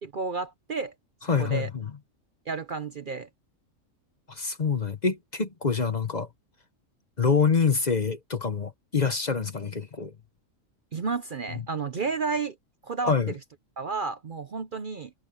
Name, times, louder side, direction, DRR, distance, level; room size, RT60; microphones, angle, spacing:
voice 1, 0.0-0.9 1.4-1.7 2.5-3.3 10.9-12.6 12.8-13.4 13.8-15.1, right 4 dB, 45° right, 0.8 m, -31 dB
voice 2, 1.3-1.9 4.3-6.3 7.2-10.1 11.5-11.6 13.0-13.3, left 5 dB, 35° left, 1.0 m, -26 dB
omnidirectional pair, 1.4 m